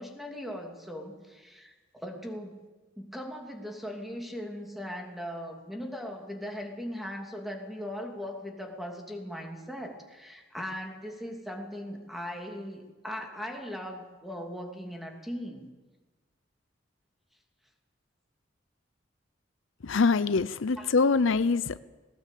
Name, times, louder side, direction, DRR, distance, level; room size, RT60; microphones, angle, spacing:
voice 1, 0.0-2.5 3.0-15.7 20.8-20.9, equal, ahead, 1 dB, 2.8 m, -39 dB
voice 2, 19.8-21.8, left 4 dB, 80° left, 15 dB, 0.6 m, -24 dB
19.0 x 19.0 x 8.5 m, 1.3 s
head